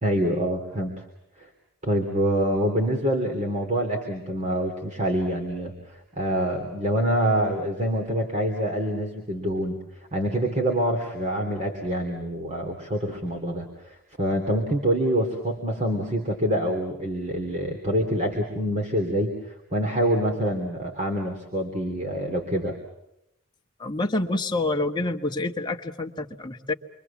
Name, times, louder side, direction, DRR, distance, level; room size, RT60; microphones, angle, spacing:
voice 1, 0.0-1.0 1.4-1.5 1.8-9.8 10.1-22.8, right 1 dB, 30° right, 2 dB, 3.2 m, -26 dB
voice 2, 23.8-26.7, left 2 dB, 20° left, 2 dB, 1.4 m, -27 dB
28.5 x 24.0 x 7.2 m, 0.83 s
head